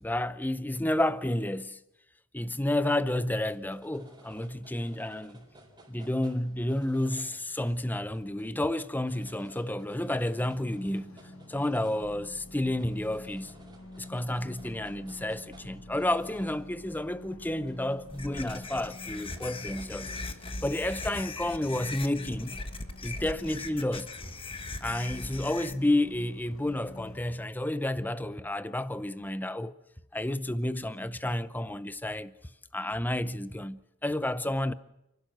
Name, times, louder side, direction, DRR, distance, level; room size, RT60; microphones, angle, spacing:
voice 1, 0.0-1.8 2.3-5.4 5.9-11.2 11.5-13.5 14.0-20.1 20.6-22.6 23.0-24.1 24.8-29.7 30.1-32.3 32.7-34.7, left 1 dB, 10° left, 0.6 m, -31 dB
sound 1, 3.3-22.7, right 1 dB, 20° right, 4.3 m, -57 dB
sound 2, 10.3-27.3, left 1 dB, 90° left, 4.6 m, -48 dB
sound 3, 18.1-25.7, left 3 dB, 25° left, 1.2 m, -39 dB
29.5 x 12.0 x 7.7 m
head